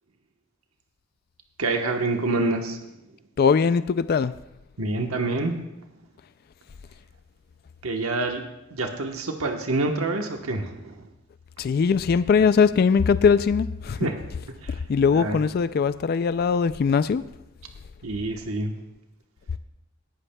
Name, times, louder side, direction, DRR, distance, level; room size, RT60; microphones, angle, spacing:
voice 1, 1.6-2.8 4.8-5.5 7.8-8.4 8.7-11.1 14.0-14.2 14.6-14.8 15.1-15.4 18.0-18.7, right 2 dB, 85° right, 3 dB, 1.2 m, -27 dB
voice 2, 3.4-4.3 11.6-14.1 14.7-17.2, left 6 dB, 45° left, 14 dB, 0.3 m, -21 dB
19.0 x 14.5 x 2.3 m, 0.91 s
head